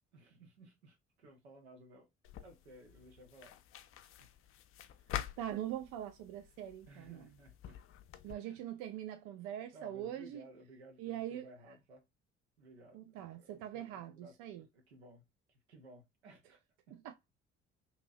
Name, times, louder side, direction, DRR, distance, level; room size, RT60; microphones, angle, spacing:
voice 1, 0.1-2.1 2.4-3.6 4.2-4.3 6.9-7.8 8.2-8.6 9.7-12.0 12.6-16.6 16.9-17.0, right 1 dB, 85° right, 0.8 m, -58 dB
sound 1, 2.2-8.3, left 11 dB, 45° left, 0.4 m, -47 dB
voice 2, 5.4-7.3 8.2-10.5 11.0-11.5 12.9-14.7 17.0-17.1, right 11 dB, 65° right, 0.5 m, -42 dB
2.9 x 2.7 x 2.4 m
figure-of-eight pair, 50°, 32 cm